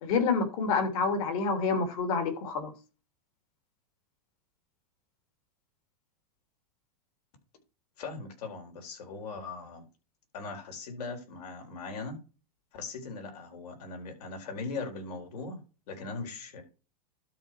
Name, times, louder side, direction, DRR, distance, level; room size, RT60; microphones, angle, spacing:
voice 1, 0.0-2.7, left 4 dB, 60° left, 3.1 m, -28 dB
voice 2, 8.0-9.9 10.3-12.2 12.7-15.6 15.9-16.6, left 4 dB, 80° left, 4.3 m, -39 dB
12.5 x 4.4 x 4.6 m
supercardioid pair, 145°, 20 cm